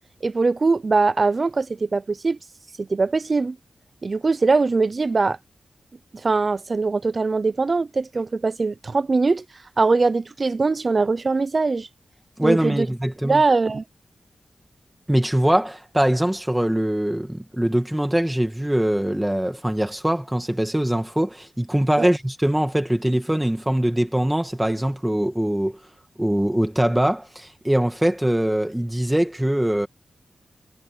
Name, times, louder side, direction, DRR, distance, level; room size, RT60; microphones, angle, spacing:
voice 1, 0.2-2.4 2.8-3.6 4.0-5.4 6.1-9.4 9.8-11.9 12.4-12.9 13.2-13.8 22.0-22.1, right 3 dB, 40° right, 0.6 m, -21 dB
voice 2, 12.4-13.4 15.1-25.8 26.2-29.9, right 1 dB, 10° right, 2.2 m, -22 dB
wide cardioid pair, 95°, 0 cm